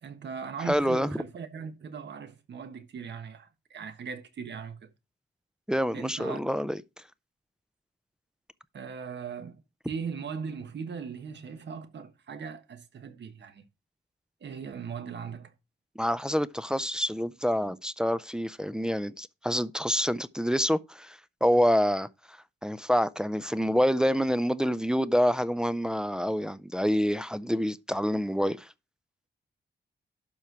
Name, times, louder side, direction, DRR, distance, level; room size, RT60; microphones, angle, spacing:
voice 1, 0.0-4.9 5.9-6.4 8.7-9.6 9.9-13.6 14.4-15.5, right 6 dB, 65° right, 1.3 m, -39 dB
voice 2, 0.7-1.1 5.7-6.8 16.0-22.1 22.6-28.7, equal, 5° right, 0.3 m, -27 dB
12.0 x 4.4 x 4.6 m
wide cardioid pair, 165°, 19 cm